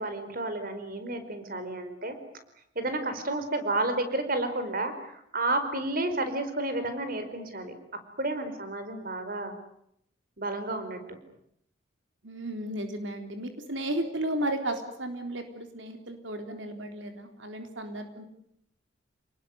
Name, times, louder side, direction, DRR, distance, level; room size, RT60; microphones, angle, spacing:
voice 1, 0.0-2.1 2.7-7.7 8.2-9.5 10.4-11.2, right 2 dB, 50° right, 9 dB, 4.9 m, -31 dB
voice 2, 12.2-18.2, right 1 dB, 85° right, 6 dB, 3.7 m, -34 dB
30.0 x 20.0 x 9.5 m, 0.74 s
head